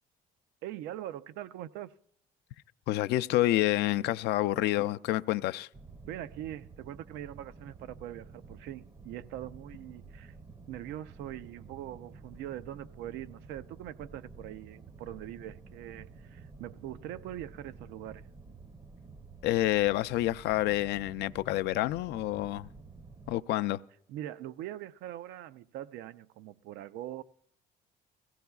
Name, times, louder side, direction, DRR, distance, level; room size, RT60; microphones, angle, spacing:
voice 1, 0.6-1.9 6.1-10.4 10.7-18.3 24.1-27.2, right 12 dB, 90° right, 0.4 m, -42 dB
voice 2, 2.9-5.7 19.4-22.7 23.3-23.8, left 15 dB, 80° left, 0.4 m, -28 dB
sound 1, 5.7-23.4, right 4 dB, 25° right, 0.5 m, -51 dB
21.0 x 16.0 x 2.3 m
cardioid pair, 110°, 17 cm